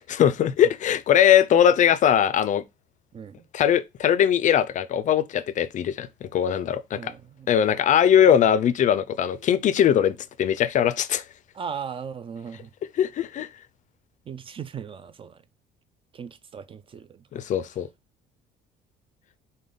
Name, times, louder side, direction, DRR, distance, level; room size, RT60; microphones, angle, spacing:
voice 1, 0.1-2.6 3.5-7.1 7.5-11.2 13.0-13.5 17.3-17.9, left 9 dB, 45° left, 0.4 m, -20 dB
voice 2, 6.9-7.5 8.3-8.4 11.5-12.7 14.3-15.4 16.1-17.2, right 7 dB, 30° right, 0.4 m, -37 dB
5.1 x 2.2 x 3.7 m
cardioid pair, 110°, 17 cm